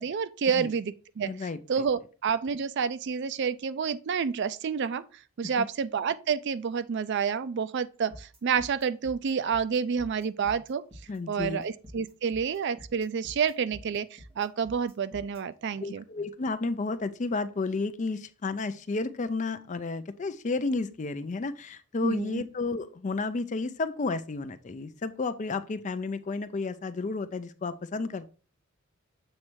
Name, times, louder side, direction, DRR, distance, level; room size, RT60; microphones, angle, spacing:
voice 1, 0.0-1.3 1.7-5.0 5.4-10.8 11.3-16.0 22.0-22.4, right 6 dB, 55° right, 0.4 m, -29 dB
voice 2, 1.2-1.8 5.6-5.7 11.1-11.6 15.8-28.3, left 3 dB, 35° left, 0.4 m, -32 dB
sound 1, 8.1-15.4, equal, 25° right, 1.9 m, -48 dB
7.3 x 3.2 x 4.6 m
head